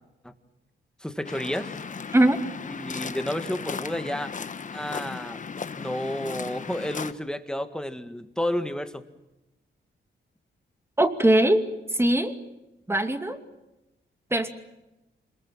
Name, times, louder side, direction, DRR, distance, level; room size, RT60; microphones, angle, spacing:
voice 1, 1.0-1.7 2.7-4.3 4.7-5.4 5.8-9.0, left 1 dB, 5° left, 8 dB, 1.8 m, -31 dB
Waves surf, 1.3-7.1, left 5 dB, 40° left, 1.2 m, -36 dB
voice 2, 11.0-11.6 11.9-12.3 12.9-13.4 14.3-14.5, right 1 dB, 15° right, 7 dB, 2.5 m, -20 dB
26.5 x 21.5 x 7.4 m, 0.98 s
wide cardioid pair, 110°, 20 cm